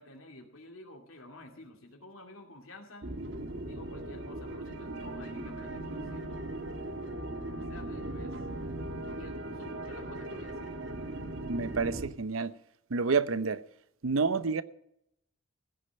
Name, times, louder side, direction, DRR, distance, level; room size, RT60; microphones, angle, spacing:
voice 1, 0.0-3.1 3.6-6.5 7.0-8.4 9.2-10.8, left 1 dB, 85° left, 2.6 m, -51 dB
sound 1, 3.0-12.1, right 1 dB, 60° right, 1.4 m, -38 dB
voice 2, 11.5-12.5 12.9-13.6 14.0-14.6, right 4 dB, 85° right, 0.7 m, -29 dB
15.5 x 6.6 x 8.6 m
head